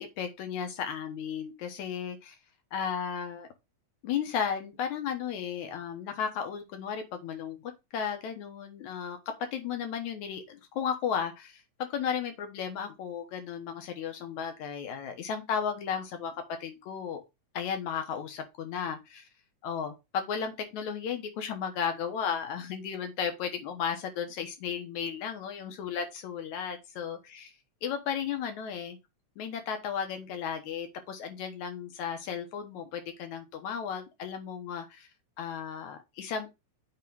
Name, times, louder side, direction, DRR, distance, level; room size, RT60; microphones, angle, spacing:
voice 1, 0.0-2.4 2.7-3.5 4.0-9.2 9.5-17.2 17.5-19.3 19.6-27.5 27.8-29.0 29.4-35.1 35.4-36.5, left 7 dB, 70° left, 2.5 m, -34 dB
7.6 x 3.5 x 4.7 m
omnidirectional pair, 3.5 m